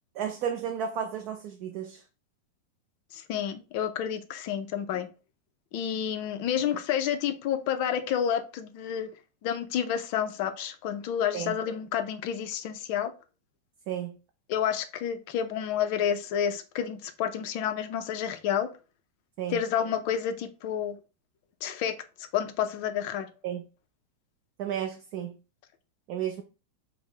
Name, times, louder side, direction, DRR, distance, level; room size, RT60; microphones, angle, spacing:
voice 1, 0.1-2.0 11.3-11.6 13.9-14.2 19.4-19.6 23.4-23.6 24.6-25.4 26.1-26.4, right 9 dB, 35° right, 0.4 m, -33 dB
voice 2, 3.1-5.1 5.7-9.1 9.4-13.1 14.5-18.7 19.5-21.0 21.6-21.9 22.3-23.3, left 9 dB, 40° left, 0.4 m, -29 dB
4.5 x 2.0 x 3.3 m
supercardioid pair, 175°, 0 cm